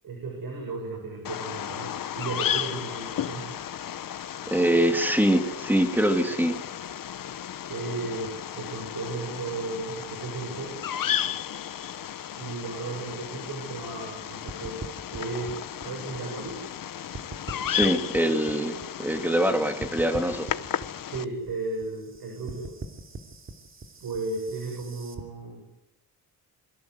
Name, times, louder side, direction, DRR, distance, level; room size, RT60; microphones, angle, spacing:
voice 1, 0.0-3.5 7.7-10.8 12.4-14.8 15.1-16.6 21.1-22.7 24.0-25.7, right 3 dB, 70° right, 1 dB, 7.5 m, -35 dB
Bird vocalization bird call bird song, 1.2-21.2, left 10 dB, 65° left, 1.2 m, -34 dB
voice 2, 4.5-6.5 17.7-20.5, right 1 dB, 5° right, 6 dB, 2.5 m, -24 dB
sound 1, 14.5-16.8 17.1-19.5 19.8-25.2, right 3 dB, 35° right, 3.0 m, -41 dB
27.5 x 24.0 x 8.2 m, 0.91 s
wide cardioid pair, 175°, 36 cm